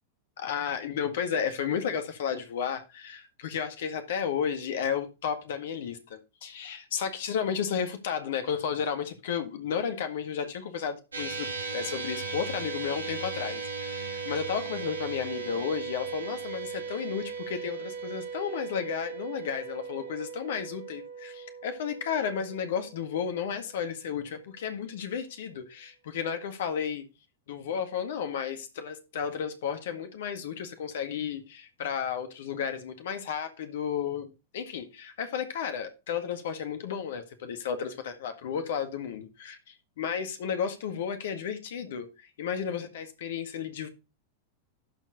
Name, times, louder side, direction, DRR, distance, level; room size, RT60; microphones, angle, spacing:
voice 1, 0.4-27.0 27.5-43.9, left 7 dB, 60° left, 1.8 m, -33 dB
sound 1, 11.1-23.6, right 5 dB, 75° right, 1.9 m, -37 dB
12.5 x 4.6 x 4.2 m
figure-of-eight pair, 90°, 0 cm